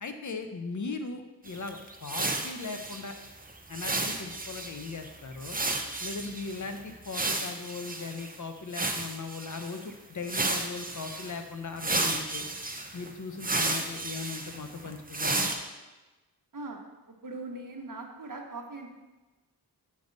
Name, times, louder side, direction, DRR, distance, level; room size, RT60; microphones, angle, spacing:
voice 1, 0.0-3.1 3.7-5.6 6.0-12.5 12.9-15.5, left 4 dB, 50° left, 7 dB, 0.7 m, -38 dB
sound 1, 1.5-8.3 8.7-9.8 10.2-11.4 11.8-15.5, right 2 dB, 20° right, 0.7 m, -33 dB
voice 2, 17.1-18.9, right 2 dB, 55° right, 2 dB, 1.0 m, -40 dB
6.7 x 5.3 x 3.9 m, 1.2 s
wide cardioid pair, 50°, 39 cm